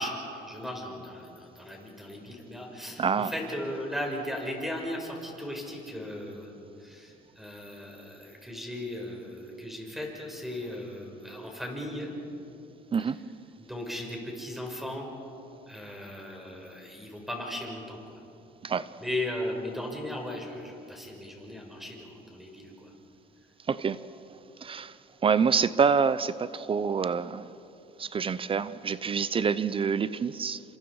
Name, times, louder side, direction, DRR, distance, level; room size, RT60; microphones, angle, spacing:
voice 1, 0.0-6.5 6.8-12.1 13.6-15.1 15.7-18.2 19.0-22.9, left 1 dB, ahead, 0 dB, 5.7 m, -37 dB
voice 2, 3.0-3.3 12.9-13.2 18.6-18.9 23.7-24.0 24.6-25.0 25.2-27.5 28.0-30.6, right 6 dB, 30° right, 16 dB, 0.7 m, -26 dB
29.0 x 26.5 x 4.9 m, 2.8 s
cardioid pair, 110°, 17 cm